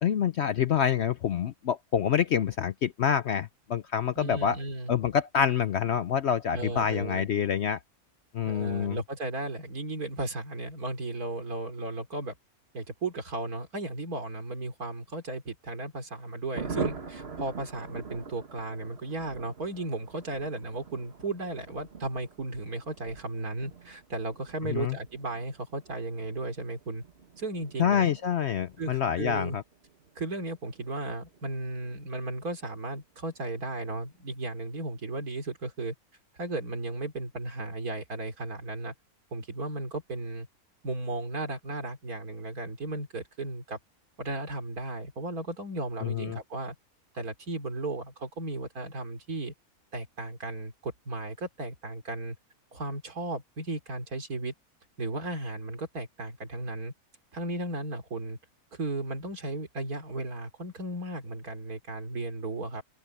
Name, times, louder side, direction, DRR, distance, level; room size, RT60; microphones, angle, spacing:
voice 1, 0.0-4.6 4.9-7.8 8.3-9.0 24.7-25.0 27.8-29.6 46.0-46.4, left 8 dB, 60° left, 0.7 m, -27 dB
voice 2, 4.2-4.9 6.5-7.3 8.5-12.3 12.7-27.0 27.4-28.1 28.8-29.6 30.2-35.9 36.4-38.9 39.3-40.5 40.8-43.8 44.2-46.8 47.1-49.5 49.9-52.4 52.7-54.5 55.0-56.9 57.3-58.4 58.7-62.8, right 2 dB, 75° right, 3.7 m, -35 dB
Thunder, 16.5-32.7 32.9-33.0 33.3-33.5 33.7-34.1, right 4 dB, 45° right, 1.8 m, -43 dB
open air
omnidirectional pair, 1.6 m